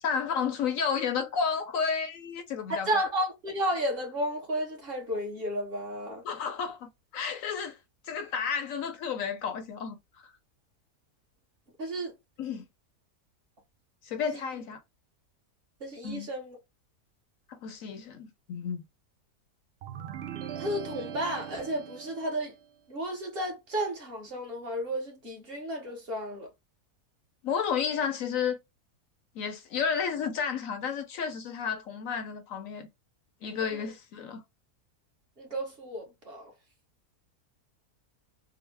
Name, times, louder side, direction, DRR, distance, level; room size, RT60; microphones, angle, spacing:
voice 1, 0.0-3.0 6.2-7.8 8.0-10.0 12.4-12.7 14.0-14.8 16.0-16.3 17.5-18.8 27.4-28.6 29.4-32.9 33.4-34.4, left 6 dB, 70° left, 0.9 m, -31 dB
voice 2, 2.7-6.2 11.8-12.1 15.8-16.6 20.6-22.5 22.9-26.5 33.7-33.8 35.4-36.5, equal, 40° right, 1.3 m, -32 dB
sound 1, 19.8-22.6, right 9 dB, 80° right, 0.5 m, -40 dB
3.8 x 2.0 x 3.3 m
omnidirectional pair, 1.7 m